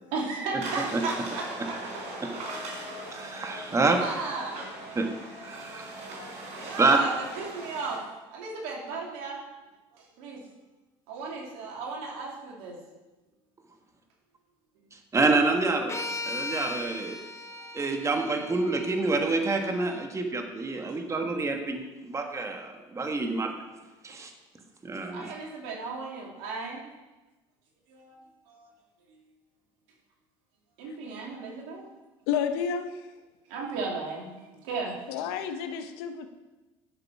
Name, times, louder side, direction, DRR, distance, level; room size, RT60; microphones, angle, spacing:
voice 1, 0.0-1.8 3.8-4.6 6.5-8.0 8.3-9.4 9.9-10.4 11.1-12.8 17.5-17.6 18.0-18.1 25.1-26.8 27.9-28.2 28.5-28.7 30.8-31.8 33.5-34.9, right 4 dB, 80° right, -1 dB, 2.7 m, -35 dB
sound 1, 0.6-8.0, right 1 dB, 60° right, 3.9 m, -39 dB
voice 2, 3.1-4.0 4.9-5.1 5.4-5.9 6.8-7.0 15.1-15.9 16.3-17.2 17.7-23.5 24.0-24.3 24.8-25.3, right 3 dB, 25° right, 4 dB, 1.5 m, -27 dB
sound 2, 15.9-20.1, left 2 dB, 20° left, 1.1 m, -38 dB
voice 3, 32.3-32.9 35.1-36.3, left 7 dB, 85° left, 8 dB, 0.9 m, -30 dB
10.5 x 6.8 x 4.8 m, 1.1 s
supercardioid pair, 85°, 13 cm